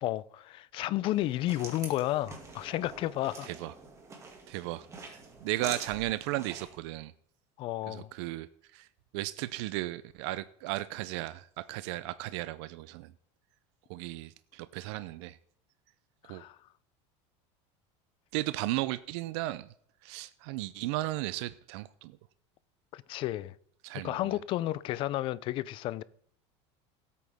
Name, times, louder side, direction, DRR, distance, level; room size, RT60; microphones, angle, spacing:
voice 1, 0.0-3.5 7.6-8.1 16.2-16.6 22.9-23.5 23.9-26.0, left 15 dB, 35° left, 0.4 m, -32 dB
sound 1, 1.1-6.8, right 3 dB, 20° right, 2.1 m, -46 dB
voice 2, 3.4-3.7 4.5-7.1 7.9-8.5 8.7-8.9 9.1-13.1 13.9-15.4 16.3-16.4 18.3-19.7 20.0-22.2 23.8-24.2, right 17 dB, 70° right, 0.5 m, -35 dB
16.5 x 8.5 x 3.5 m
cardioid pair, 165°, 15 cm